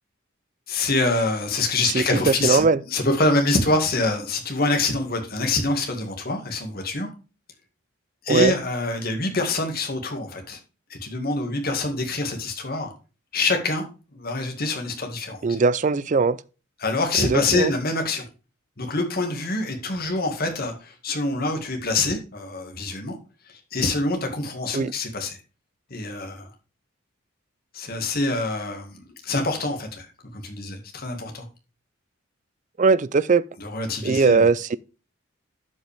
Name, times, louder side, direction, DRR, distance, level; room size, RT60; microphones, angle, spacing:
voice 1, 0.7-7.1 8.2-10.6 10.9-12.9 13.3-13.8 14.1-15.4 16.8-18.2 18.8-23.2 23.5-25.4 25.9-26.5 27.7-30.1 30.3-31.5 33.6-34.5, left 2 dB, 45° left, 2.0 m, -25 dB
voice 2, 1.9-2.8 8.3-8.5 15.4-16.4 17.2-17.7 24.7-24.9 32.8-33.4 34.0-34.8, right 4 dB, 35° right, 0.4 m, -20 dB
12.0 x 5.3 x 3.5 m
head